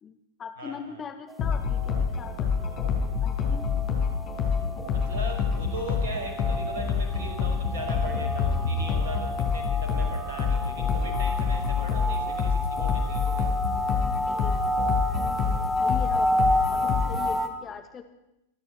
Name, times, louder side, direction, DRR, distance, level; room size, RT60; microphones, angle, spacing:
voice 1, 0.0-2.7 3.2-3.7 14.1-14.6 15.1-18.0, left 7 dB, 25° left, 7 dB, 2.0 m, -41 dB
voice 2, 0.6-1.0 4.9-13.5, right 3 dB, 60° right, 5 dB, 5.3 m, -39 dB
sound 1, 1.3-17.5, left 1 dB, ahead, 2.3 m, -31 dB
sound 2, 1.4-17.4, left 6 dB, 40° left, 5.0 m, -27 dB
27.0 x 11.0 x 8.5 m, 0.89 s
figure-of-eight pair, 90°, 0 cm